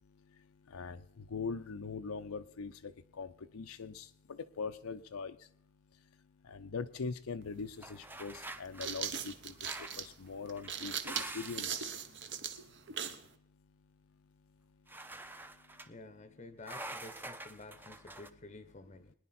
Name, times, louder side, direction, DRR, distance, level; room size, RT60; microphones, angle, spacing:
voice 1, 0.7-2.9 3.2-3.3 3.5-4.1 4.6-5.4 6.5-9.5 10.0-11.9, left 5 dB, 80° left, 8 dB, 0.6 m, -41 dB
sound 1, 7.4-7.5 8.5-13.3, right 8 dB, 55° right, 0.9 m, -39 dB
sound 2, 7.8-9.0 9.6-10.1 10.5-11.8 14.9-15.9 16.6-18.3, right 2 dB, 10° right, 0.5 m, -46 dB
voice 2, 15.9-19.1, left 2 dB, 30° left, 11 dB, 0.7 m, -51 dB
22.0 x 10.0 x 4.2 m, 0.69 s
head